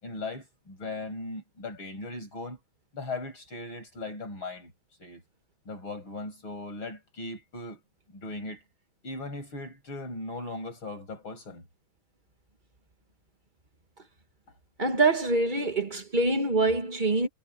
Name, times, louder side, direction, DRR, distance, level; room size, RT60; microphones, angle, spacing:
voice 1, 0.0-2.6 2.9-4.7 5.0-5.2 5.6-7.8 8.1-8.6 9.0-11.7, left 2 dB, 75° left, 8.2 m, -38 dB
voice 2, 14.8-17.3, right 3 dB, 25° right, 1.3 m, -25 dB
omnidirectional pair, 2.3 m